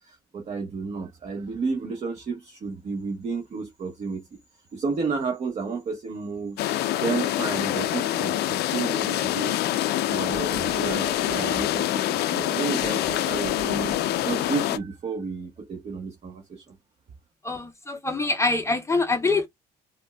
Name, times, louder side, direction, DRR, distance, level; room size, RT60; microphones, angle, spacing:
voice 1, 0.0-4.3 4.7-6.7 7.0-9.6 10.1-16.8, right 4 dB, 40° right, 0.9 m, -32 dB
sound 1, 6.6-14.8, left 13 dB, 75° left, 0.4 m, -26 dB
sound 2, 10.1-11.7 12.6-14.4, right 4 dB, 60° right, 1.2 m, -38 dB
voice 2, 17.4-19.5, left 3 dB, 15° left, 0.5 m, -24 dB
5.0 x 2.2 x 2.2 m
cardioid pair, 110°, 17 cm